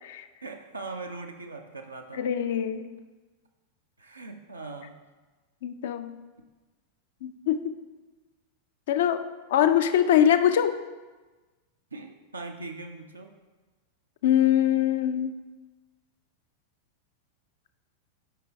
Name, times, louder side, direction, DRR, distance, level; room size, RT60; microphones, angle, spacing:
voice 1, 0.4-2.2 4.0-4.9 11.9-13.3, right 3 dB, 80° right, 3 dB, 0.5 m, -40 dB
voice 2, 2.1-2.8 5.6-6.2 7.2-7.7 8.9-10.8 14.2-15.4, left 10 dB, 55° left, 10 dB, 0.4 m, -23 dB
8.2 x 5.1 x 3.3 m, 1.3 s
figure-of-eight pair, 90°, 0 cm